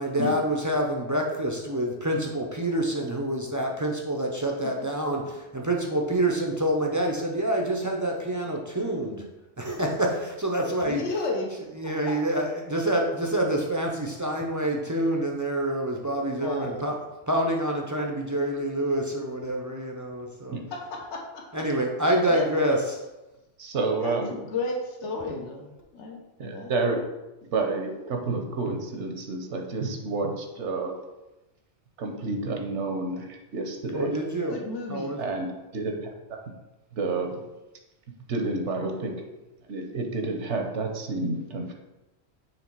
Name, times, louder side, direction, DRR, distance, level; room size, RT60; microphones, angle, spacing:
voice 1, 0.0-9.3 9.6-11.0 11.8-17.0 17.3-20.6 21.5-23.0 33.9-34.6 34.9-35.3, right 1 dB, 25° right, 0 dB, 0.4 m, -27 dB
voice 2, 10.8-11.5 11.8-12.2 16.4-16.9 20.7-21.6 22.0-22.5 24.0-25.7 25.9-26.7 34.5-35.2, left 3 dB, 70° left, 0 dB, 1.2 m, -33 dB
voice 3, 23.6-24.3 26.4-27.0 27.5-30.9 32.0-34.1 35.2-35.5 35.7-36.4 36.9-37.5 38.3-39.2 39.7-41.7, right 3 dB, 75° right, 3 dB, 1.2 m, -29 dB
6.7 x 3.2 x 4.5 m, 1.0 s
omnidirectional pair, 1.2 m